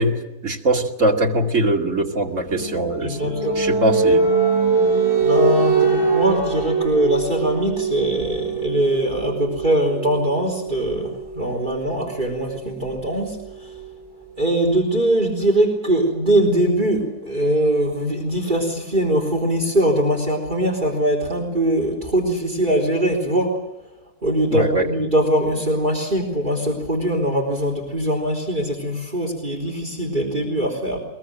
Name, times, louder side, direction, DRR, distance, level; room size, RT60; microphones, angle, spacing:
voice 1, 0.0-4.3 24.5-24.9, right 1 dB, 60° right, 1 dB, 2.8 m, -22 dB
sound 1, 2.5-14.0, right 4 dB, 15° right, 3.0 m, -23 dB
voice 2, 3.0-3.6 5.2-13.4 14.4-23.6 24.2-31.0, right 1 dB, 35° right, 2 dB, 4.1 m, -21 dB
22.5 x 21.5 x 7.8 m, 0.93 s
omnidirectional pair, 1.5 m